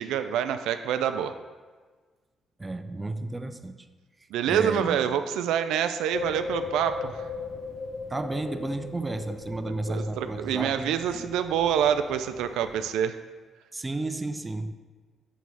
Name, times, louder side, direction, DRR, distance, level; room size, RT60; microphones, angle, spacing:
voice 1, 0.0-1.3 4.3-7.3 9.9-13.2, right 9 dB, 90° right, 9 dB, 0.3 m, -26 dB
voice 2, 2.6-3.9 4.5-5.0 8.1-11.2 13.7-14.7, right 2 dB, 15° right, 8 dB, 0.4 m, -32 dB
sound 1, 6.1-12.8, left 4 dB, 60° left, 0.8 m, -38 dB
6.9 x 3.1 x 6.0 m, 1.4 s
cardioid pair, 90°, 0 cm